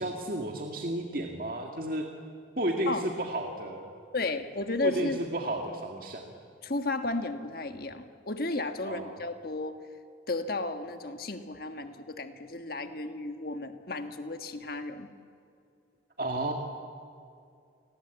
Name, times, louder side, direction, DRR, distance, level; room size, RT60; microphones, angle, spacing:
voice 1, 0.0-2.1 2.6-3.9 4.8-6.3 8.9-9.2 16.2-16.5, right 1 dB, 50° right, 2 dB, 2.0 m, -32 dB
voice 2, 4.1-5.2 6.6-9.8 10.3-15.1, left 2 dB, 55° left, 7 dB, 1.6 m, -33 dB
28.5 x 21.5 x 8.2 m, 2.3 s
head